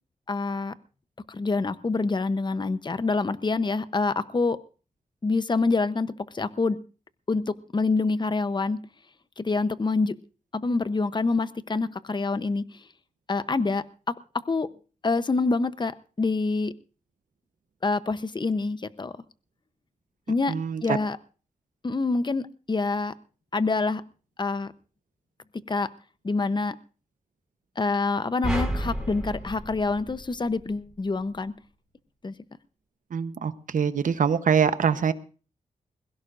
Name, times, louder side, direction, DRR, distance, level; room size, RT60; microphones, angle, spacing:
voice 1, 0.3-0.7 1.3-4.6 5.2-6.8 7.3-8.8 9.4-10.2 10.5-12.8 13.3-14.2 14.5-14.7 15.0-15.9 16.2-16.7 17.8-19.1 20.3-20.5 20.8-21.2 21.8-23.1 23.5-24.0 24.4-24.7 25.7-25.9 26.2-26.8 27.8-31.5 32.2-32.3, left 3 dB, 35° left, 14 dB, 0.9 m, -26 dB
voice 2, 20.5-21.0 33.1-35.1, right 7 dB, 80° right, 12 dB, 1.0 m, -24 dB
sound 1, 28.4-30.8, equal, 5° right, 5.7 m, -31 dB
21.5 x 16.5 x 2.6 m, 0.36 s
cardioid pair, 65°, 14 cm